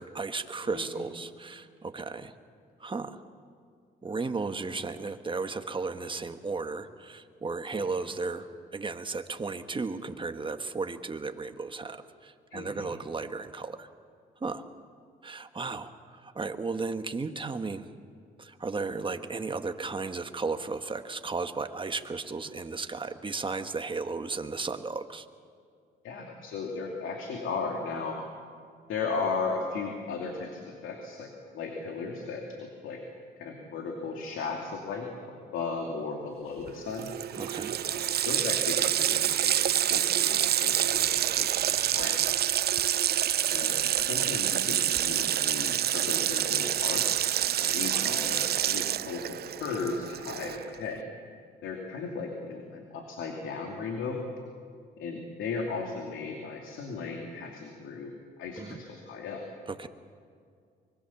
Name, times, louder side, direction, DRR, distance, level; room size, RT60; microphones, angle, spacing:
voice 1, 0.0-2.3 2.8-3.2 4.0-13.9 14.4-14.6 15.2-17.9 18.4-25.3 37.3-37.8 47.5-47.6 47.9-48.2 58.6-58.8 59.7-59.9, right 4 dB, 25° right, 8 dB, 1.4 m, -35 dB
voice 2, 12.5-12.9 26.0-28.2 28.9-33.0 33.4-37.1 37.8-42.2 43.5-47.3 47.6-51.0 51.6-54.2 55.0-58.1 58.4-59.4, left 4 dB, 80° left, 2 dB, 2.8 m, -36 dB
Water tap faucet, 36.7-36.8 37.0-50.7, right 11 dB, 55° right, 0.5 m, -27 dB
25.0 x 22.0 x 7.2 m, 2.2 s
cardioid pair, 90°, 20 cm